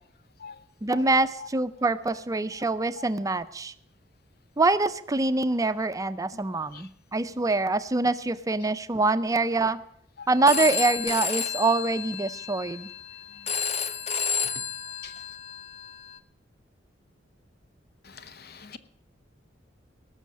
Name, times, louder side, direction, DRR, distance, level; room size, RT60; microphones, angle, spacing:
voice 1, 0.8-3.7 4.6-9.8 10.3-12.9, right 3 dB, 20° right, 12 dB, 0.5 m, -25 dB
Telephone, 10.3-16.2, left 6 dB, 35° left, 0.6 m, -31 dB
voice 2, 18.0-18.8, left 6 dB, 60° left, 12 dB, 0.9 m, -43 dB
18.0 x 6.4 x 7.4 m, 0.67 s
head